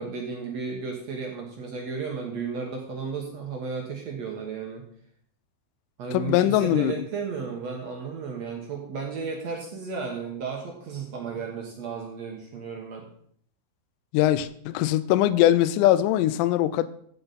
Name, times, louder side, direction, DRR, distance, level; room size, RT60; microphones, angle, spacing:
voice 1, 0.0-4.8 6.0-13.1, right 5 dB, 60° right, 2.0 m, -34 dB
voice 2, 6.1-7.0 14.1-16.9, left 13 dB, 90° left, 1.8 m, -21 dB
15.5 x 6.7 x 4.1 m
omnidirectional pair, 4.3 m